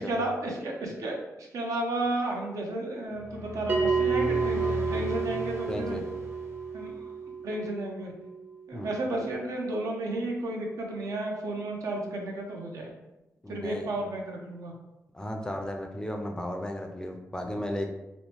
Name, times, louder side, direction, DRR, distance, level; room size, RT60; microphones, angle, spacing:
voice 1, 0.0-6.0 6.7-7.1 7.4-8.1 8.7-12.9 13.5-14.7, right 2 dB, 75° right, 0 dB, 0.6 m, -33 dB
sound 1, 3.1-7.0, left 2 dB, 50° right, 1.1 m, -36 dB
Bell, 3.7-8.7, right 5 dB, 30° right, 0.6 m, -31 dB
voice 2, 5.7-6.0 8.7-8.9 13.4-13.9 15.1-17.9, left 1 dB, 15° left, 3 dB, 0.4 m, -34 dB
2.9 x 2.0 x 2.9 m, 0.99 s
cardioid pair, 90°, 6 cm